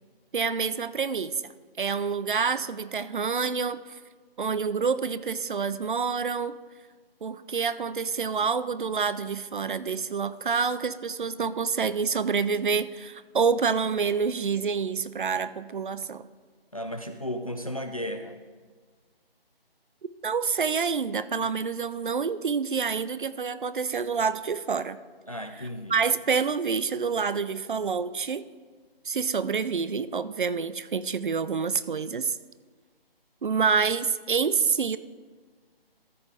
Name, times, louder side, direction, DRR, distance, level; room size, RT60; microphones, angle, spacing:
voice 1, 0.3-1.5 1.8-4.0 4.4-6.6 7.2-16.3 20.2-25.0 25.6-28.4 29.0-32.4 33.4-35.0, right 5 dB, 55° right, 15 dB, 0.5 m, -27 dB
voice 2, 16.7-18.4 25.3-26.0, equal, 35° left, 6 dB, 0.4 m, -34 dB
13.5 x 5.4 x 4.7 m, 1.5 s
figure-of-eight pair, 170°, 30 cm